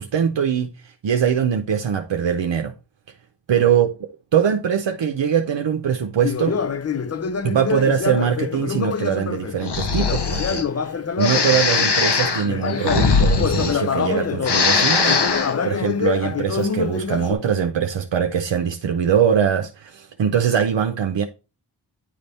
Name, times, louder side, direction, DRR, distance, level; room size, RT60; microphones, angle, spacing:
voice 1, 0.0-2.7 3.5-3.9 4.3-6.6 7.4-21.2, right 8 dB, 85° right, 0.7 m, -22 dB
Conversation, 6.2-12.0 12.4-17.3, left 6 dB, 35° left, 0.5 m, -26 dB
Breathing, 9.6-10.6 11.2-14.1 14.4-15.5, left 4 dB, 65° left, 1.0 m, -20 dB
9.9 x 3.4 x 4.1 m
wide cardioid pair, 65°, 43 cm